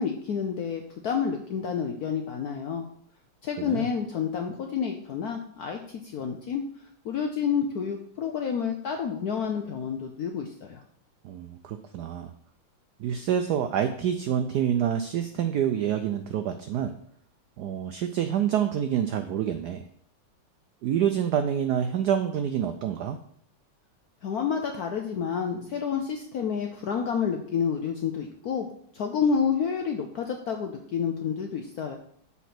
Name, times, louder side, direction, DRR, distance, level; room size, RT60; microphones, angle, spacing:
voice 1, 0.0-2.8 3.4-6.6 7.0-10.8 24.2-28.7 28.9-32.0, left 6 dB, 70° left, 3 dB, 0.9 m, -29 dB
voice 2, 11.2-12.3 13.0-16.9 17.6-19.8 20.8-23.2, right 9 dB, 90° right, 8 dB, 0.8 m, -27 dB
7.3 x 4.2 x 5.8 m, 0.64 s
omnidirectional pair, 2.3 m